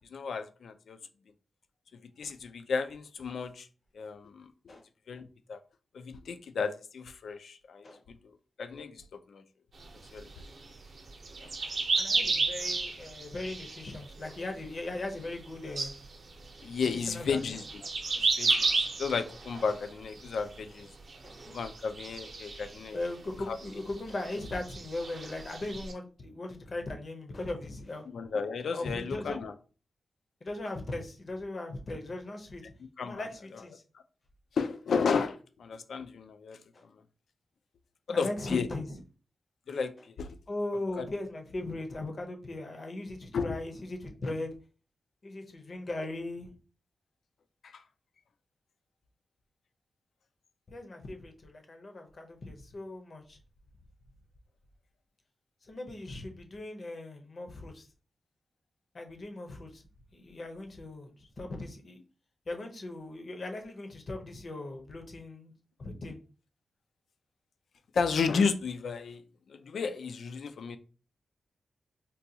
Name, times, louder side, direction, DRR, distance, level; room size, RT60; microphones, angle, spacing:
voice 1, 0.1-1.0 2.2-3.7 3.9-4.5 5.1-5.2 5.5-5.6 5.9-7.9 8.6-9.0 9.3-9.4 10.1-10.3 16.6-17.6 18.2-18.7 19.0-20.9 21.5-23.0 23.5-23.6 28.1-29.5 33.0-33.2 34.6-36.6 38.1-38.7 39.7-39.9 40.2-40.4 41.0-41.1 43.3-43.6 47.6-47.8 67.9-69.2 69.5-70.8, left 5 dB, 75° left, 0.4 m, -33 dB
sound 1, 9.8-14.7 14.9-15.5 15.8-20.8 21.1-23.2 23.4-25.9, right 3 dB, 55° right, 0.6 m, -33 dB
voice 2, 11.9-15.9 16.9-17.6 21.2-21.4 22.9-28.0 28.7-29.4 30.4-32.7 33.0-33.8 36.7-36.8 38.1-39.0 40.5-44.5 45.2-46.5 50.7-53.4 55.6-57.8 58.9-59.8 60.1-62.0 62.5-65.5 65.8-66.2, left 2 dB, 45° left, 0.7 m, -38 dB
3.8 x 2.3 x 2.7 m
wide cardioid pair, 130°, 0 cm